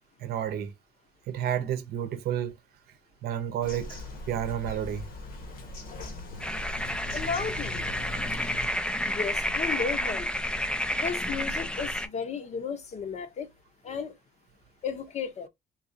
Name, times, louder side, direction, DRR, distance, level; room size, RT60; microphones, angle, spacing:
voice 1, 0.2-0.7 1.3-2.6 3.2-5.1, right 10 dB, 65° right, 0.7 m, -31 dB
Bird vocalization bird call bird song, 3.6-8.7, left 2 dB, 60° left, 1.1 m, -40 dB
sound 1, 6.4-12.1, left 1 dB, 5° left, 0.4 m, -30 dB
voice 2, 7.1-7.9 9.0-10.3 11.0-13.5 13.8-14.1 14.8-15.5, left 6 dB, 40° left, 0.8 m, -34 dB
3.9 x 2.3 x 2.7 m
cardioid pair, 110°, 17 cm